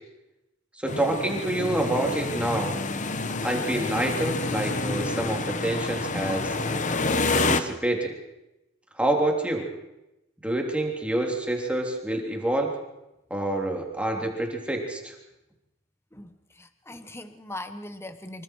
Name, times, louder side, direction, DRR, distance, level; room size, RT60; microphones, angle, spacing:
voice 1, 0.8-2.8 3.4-6.8 7.5-8.1 9.0-9.7 10.4-12.7 13.3-15.1, right 1 dB, 5° right, 1 dB, 3.4 m, -27 dB
sound 1, 0.9-7.6, left 3 dB, 35° left, 1.2 m, -28 dB
voice 2, 16.1-18.4, left 1 dB, 10° left, 9 dB, 0.9 m, -40 dB
26.0 x 25.0 x 4.7 m, 0.93 s
head